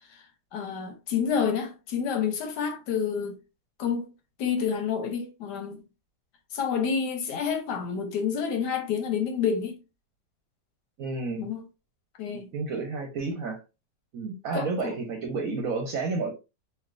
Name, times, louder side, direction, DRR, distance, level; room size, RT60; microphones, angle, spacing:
voice 1, 0.5-3.4 3.8-4.1 4.4-5.8 6.5-9.8 11.4-11.6 12.2-12.5 14.5-14.9, left 7 dB, 85° left, 1.4 m, -29 dB
voice 2, 11.0-11.5 12.5-13.6 14.1-16.3, right 4 dB, 65° right, 1.0 m, -31 dB
3.3 x 2.6 x 2.4 m
omnidirectional pair, 1.8 m